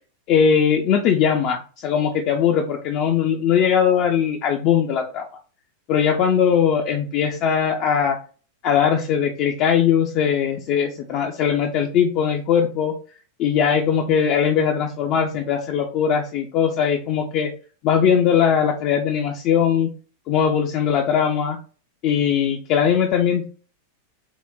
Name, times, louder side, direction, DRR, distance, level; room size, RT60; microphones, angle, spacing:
voice 1, 0.3-5.2 5.9-8.2 8.6-12.9 13.4-17.5 17.8-19.9 20.3-21.6 22.0-23.4, left 7 dB, 40° left, 2 dB, 0.3 m, -20 dB
3.6 x 2.0 x 2.3 m, 0.39 s
figure-of-eight pair, 90°, 0 cm